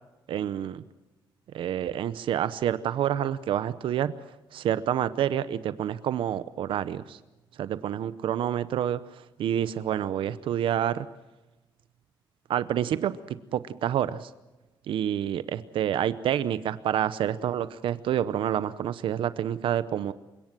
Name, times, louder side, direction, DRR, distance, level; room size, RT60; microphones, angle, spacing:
voice 1, 0.3-0.8 1.5-4.1 4.5-7.2 7.6-9.0 9.4-11.1 12.5-13.1 13.5-14.3 14.9-20.1, right 10 dB, 80° right, 14 dB, 0.8 m, -28 dB
28.5 x 17.5 x 7.5 m, 1.1 s
cardioid pair, 145°, 9 cm